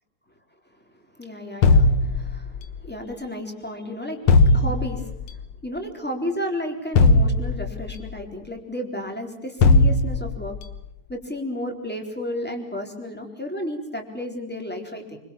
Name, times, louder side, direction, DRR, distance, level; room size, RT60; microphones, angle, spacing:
voice 1, 1.1-2.5 2.8-5.1 5.6-10.6 11.1-15.2, left 1 dB, 5° left, 3 dB, 4.0 m, -32 dB
sound 1, 1.6-2.8 4.3-5.2 7.0-8.0 9.6-10.6, left 3 dB, 75° left, 2.1 m, -18 dB
26.0 x 25.5 x 7.2 m, 0.78 s
omnidirectional pair, 2.4 m